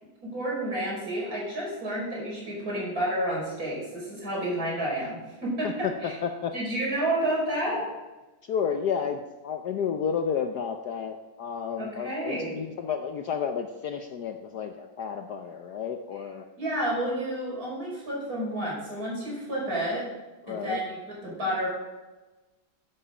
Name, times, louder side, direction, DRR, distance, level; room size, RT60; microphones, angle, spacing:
voice 1, 0.2-6.2 6.5-7.9 11.8-12.5 16.6-20.0 20.5-21.7, right 1 dB, 45° right, -4 dB, 5.9 m, -30 dB
voice 2, 5.6-6.5 8.4-16.5 20.5-20.8, left 7 dB, 65° left, 6 dB, 1.1 m, -31 dB
11.5 x 11.0 x 5.0 m, 1.1 s
omnidirectional pair, 2.2 m